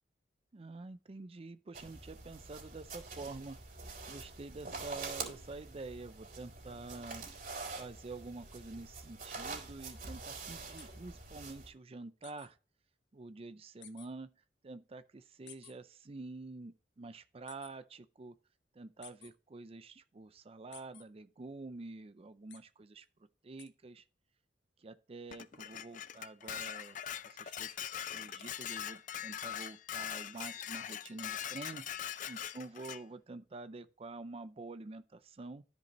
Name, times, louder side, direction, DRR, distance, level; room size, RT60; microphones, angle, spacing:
voice 1, 0.5-3.8 4.1-12.6 13.1-18.4 18.7-23.1 23.4-24.1 24.8-27.8 28.1-31.8 32.3-35.6, right 3 dB, 35° right, 0.5 m, -48 dB
sound 1, 1.7-11.7, right 4 dB, 50° right, 3.4 m, -46 dB
sound 2, 10.8-10.9 12.2-12.5 13.8-14.1 15.5-15.7 17.5-17.7 19.0-19.3 20.7-21.0 22.5-22.6 23.6-23.7, left 9 dB, 85° left, 1.1 m, -53 dB
Dishes pots and pans, 25.3-33.0, left 10 dB, 45° left, 0.5 m, -42 dB
13.0 x 5.3 x 3.0 m
head